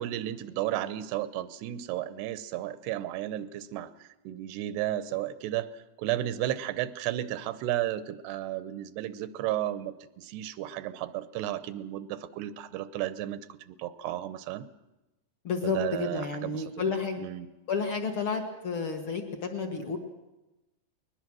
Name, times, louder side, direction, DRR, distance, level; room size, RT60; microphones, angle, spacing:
voice 1, 0.0-13.4 13.7-14.7 15.6-16.9 17.2-17.5, right 13 dB, 90° right, 14 dB, 2.9 m, -33 dB
voice 2, 15.4-17.2 17.7-20.0, left 5 dB, 55° left, 4 dB, 1.5 m, -31 dB
20.5 x 20.5 x 6.2 m, 1.0 s
omnidirectional pair, 4.6 m